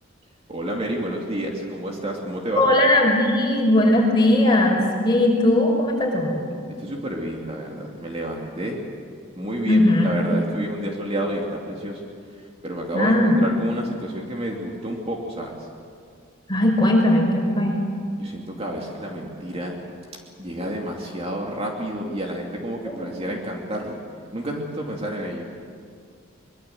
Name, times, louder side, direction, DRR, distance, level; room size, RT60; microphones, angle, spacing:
voice 1, 0.5-2.7 6.8-8.8 9.4-12.1 12.6-15.5 18.2-19.8 20.4-24.0 24.3-25.5, right 1 dB, 30° right, -1 dB, 2.6 m, -29 dB
voice 2, 2.6-6.4 9.7-10.1 12.9-13.3 16.5-17.8 22.8-23.0, left 1 dB, 20° left, -1 dB, 5.6 m, -18 dB
24.0 x 22.5 x 7.8 m, 2.2 s
head